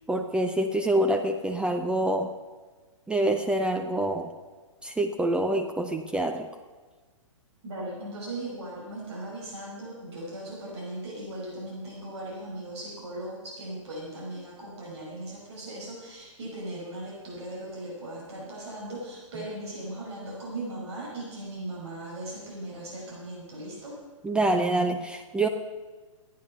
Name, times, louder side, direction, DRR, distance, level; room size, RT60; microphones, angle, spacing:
voice 1, 0.1-2.3 3.1-4.3 4.8-6.5 24.2-25.5, right 1 dB, 5° right, 4 dB, 0.5 m, -26 dB
voice 2, 7.6-24.0, right 1 dB, 55° right, -4 dB, 5.2 m, -38 dB
14.0 x 9.3 x 5.5 m, 1.3 s
hypercardioid pair, 125°, 17 cm